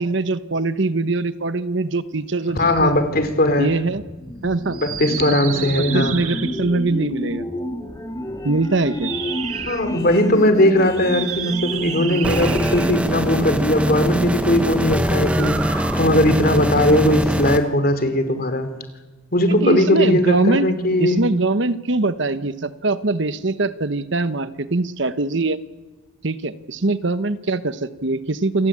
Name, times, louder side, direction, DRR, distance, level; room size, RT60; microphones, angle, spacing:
voice 1, 0.0-2.9 3.6-4.0 4.4-4.8 5.2-7.4 8.4-9.1 19.6-20.7 21.0-25.6 26.2-28.7, right 2 dB, 60° right, 13 dB, 1.0 m, -22 dB
voice 2, 2.5-3.7 4.7-6.2 9.7-18.7 19.3-21.2, left 1 dB, 45° left, 9 dB, 3.3 m, -18 dB
sound 1, 2.5-12.9, equal, 15° left, 1.9 m, -31 dB
sound 2, 4.7-6.8 8.8-9.9 10.9-13.1 15.2-16.1, right 10 dB, 80° right, 1.8 m, -31 dB
sound 3, 12.2-17.6, equal, 5° right, 1.3 m, -23 dB
28.0 x 19.5 x 8.8 m, 1.2 s
head